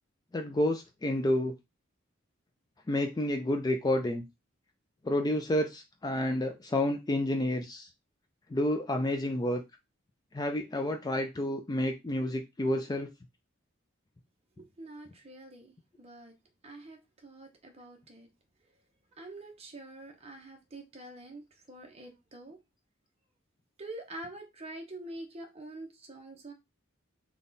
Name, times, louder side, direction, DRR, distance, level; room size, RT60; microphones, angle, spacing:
voice 1, 0.3-1.5 2.9-4.2 5.0-7.9 8.5-9.6 10.3-13.1, left 1 dB, 20° left, 0.3 m, -29 dB
voice 2, 14.6-16.3 16.6-18.3 19.2-22.6 23.8-26.5, right 2 dB, 30° right, 0.9 m, -46 dB
3.6 x 2.3 x 3.9 m
head